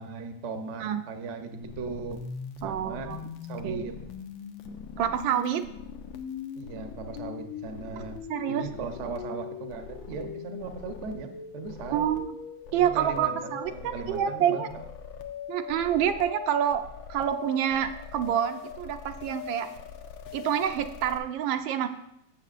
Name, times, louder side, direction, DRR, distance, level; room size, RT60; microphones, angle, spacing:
voice 1, 0.0-2.2 2.6-3.1 3.5-4.0 6.5-8.2 8.5-12.1 12.7-14.9, right 4 dB, 55° right, 6 dB, 0.8 m, -38 dB
sound 1, 1.6-21.2, left 7 dB, 85° left, 1.6 m, -41 dB
voice 2, 2.6-3.2 3.6-3.9 5.0-5.6 8.3-8.7 11.9-12.4 12.7-14.7 15.5-19.7 20.3-21.9, right 10 dB, 80° right, 8 dB, 1.3 m, -27 dB
14.5 x 6.9 x 2.4 m, 0.77 s
omnidirectional pair, 2.1 m